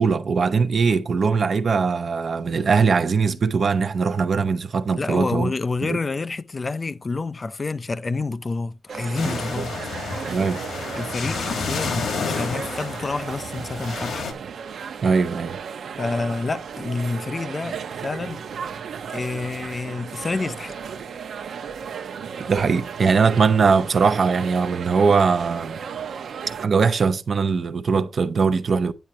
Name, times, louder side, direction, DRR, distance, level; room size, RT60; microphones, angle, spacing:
voice 1, 0.0-5.5 5.8-6.0 9.2-9.6 10.3-10.6 15.0-15.6 22.5-25.8 26.6-28.9, right 5 dB, 45° right, 0.7 m, -21 dB
voice 2, 4.9-9.7 11.0-14.3 16.0-18.4 19.1-20.8, left 3 dB, 25° left, 0.4 m, -28 dB
sound 1, 8.9-26.7, right 7 dB, 70° right, 0.9 m, -35 dB
sound 2, 9.1-14.3, left 5 dB, 90° left, 2.0 m, -30 dB
10.0 x 8.8 x 2.9 m
wide cardioid pair, 170°, 0 cm